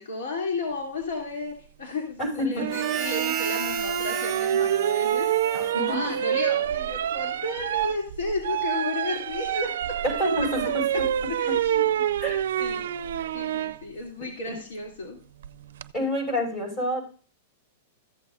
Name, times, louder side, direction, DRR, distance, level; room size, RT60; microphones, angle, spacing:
voice 1, 0.0-9.7 11.4-11.7 12.6-12.8 13.3-15.2, left 3 dB, 75° left, -1 dB, 3.0 m, -33 dB
voice 2, 2.2-2.7 5.5-6.1 10.0-10.8 11.4-11.5 12.2-12.4 14.5-14.6 15.9-17.0, equal, 25° left, 1 dB, 6.2 m, -28 dB
sound 1, 2.6-13.8 15.4-15.9, right 10 dB, 80° right, 0.4 m, -27 dB
Harmonica, 2.7-6.5, right 8 dB, 20° right, 1.2 m, -34 dB
14.5 x 7.8 x 2.6 m, 0.40 s
supercardioid pair, 150°, 0 cm